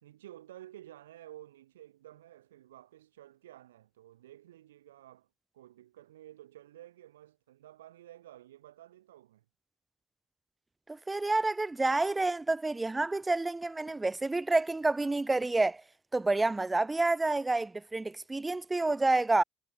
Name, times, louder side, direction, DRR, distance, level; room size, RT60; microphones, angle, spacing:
voice 1, 0.0-5.3 5.5-9.4, right 13 dB, 85° right, 1.3 m, -52 dB
voice 2, 10.9-15.8 16.1-19.4, right 2 dB, 20° right, 0.4 m, -29 dB
hypercardioid pair, 50°, 0 cm